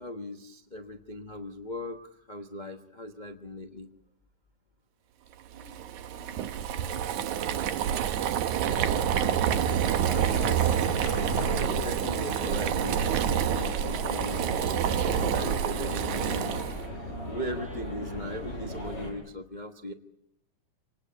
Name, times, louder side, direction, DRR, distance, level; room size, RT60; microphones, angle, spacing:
voice 1, 0.0-2.0 2.3-3.9 10.0-10.4 11.2-16.7 17.3-19.9, left 1 dB, 70° left, 3 dB, 0.4 m, -39 dB
voice 2, 5.5-5.8 6.1-9.0, left 1 dB, 10° right, 3 dB, 7.4 m, -54 dB
Boiling, 5.6-16.9, right 9 dB, 80° right, 2.5 m, -28 dB
sound 1, 8.6-19.1, left 1 dB, 20° left, 8.1 m, -36 dB
27.0 x 19.0 x 8.6 m, 0.81 s
omnidirectional pair, 3.4 m